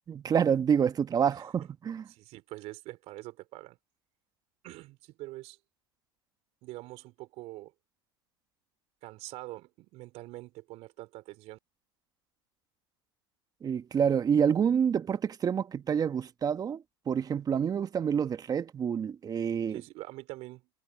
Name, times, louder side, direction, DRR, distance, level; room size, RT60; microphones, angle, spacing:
voice 1, 0.1-2.1 13.6-19.8, right 7 dB, 30° right, 1.5 m, -28 dB
voice 2, 2.1-3.8 4.6-5.6 6.6-7.7 9.0-11.6 19.7-20.7, right 19 dB, 55° right, 4.2 m, -44 dB
hypercardioid pair, 90°, 13 cm